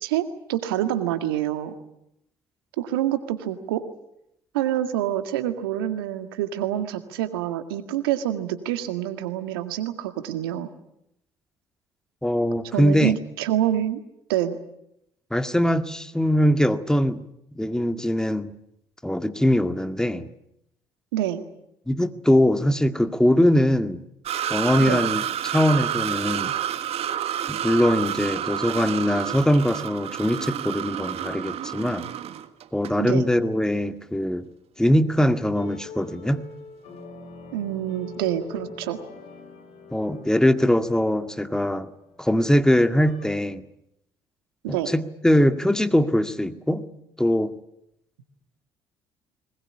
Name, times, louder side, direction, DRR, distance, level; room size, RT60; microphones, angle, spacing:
voice 1, 0.0-1.7 2.8-3.8 4.5-10.7 12.7-14.0 14.3-14.6 21.1-21.4 24.8-25.0 33.0-33.2 37.5-39.0 44.6-44.9, right 12 dB, 80° right, 9 dB, 2.0 m, -26 dB
voice 2, 12.2-13.2 15.3-17.2 17.6-18.5 19.0-20.3 21.9-24.0 24.5-26.5 27.5-32.0 32.7-34.5 34.8-36.4 39.9-41.9 42.2-43.6 44.7-46.9 47.2-47.6, equal, 5° left, 10 dB, 2.0 m, -22 dB
sound 1, 24.2-33.0 33.3-33.4 35.2-35.3, right 10 dB, 60° right, 1.6 m, -29 dB
sound 2, 34.9-43.3, left 4 dB, 65° left, 4.7 m, -44 dB
21.5 x 20.0 x 9.9 m, 0.80 s
hypercardioid pair, 55°, 12 cm